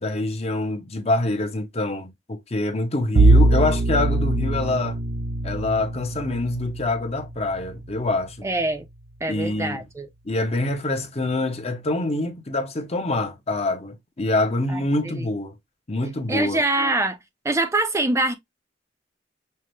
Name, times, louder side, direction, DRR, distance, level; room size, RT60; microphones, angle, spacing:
voice 1, 0.0-5.0 5.4-8.5 9.3-9.8 10.2-15.5 15.9-16.6, left 2 dB, 35° left, 0.8 m, -25 dB
Bowed string instrument, 3.1-8.2, right 2 dB, 60° right, 0.7 m, -22 dB
voice 2, 8.4-8.8 9.2-10.1 14.7-15.3 16.3-17.2 17.4-18.3, right 2 dB, 15° right, 0.5 m, -24 dB
5.6 x 2.1 x 3.1 m
head